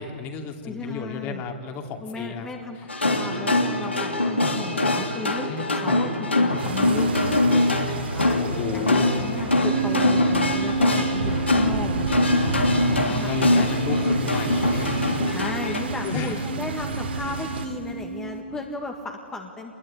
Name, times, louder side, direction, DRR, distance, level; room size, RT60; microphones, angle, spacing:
voice 1, 0.0-2.5 2.8-2.9 5.5-6.0 8.4-9.1 12.8-15.2 15.7-16.5, left 5 dB, 30° left, 4 dB, 2.7 m, -33 dB
voice 2, 0.6-1.4 2.0-8.4 8.7-13.7 15.3-19.8, left 3 dB, 10° left, 2 dB, 1.9 m, -35 dB
sound 1, 2.9-15.8, left 2 dB, 85° left, 3.1 m, -23 dB
sound 2, 6.6-17.7, right 4 dB, 70° right, 3.4 m, -32 dB
sound 3, 9.6-18.4, right 5 dB, 40° right, 1.4 m, -31 dB
26.5 x 21.0 x 10.0 m, 2.4 s
figure-of-eight pair, 120°, 6 cm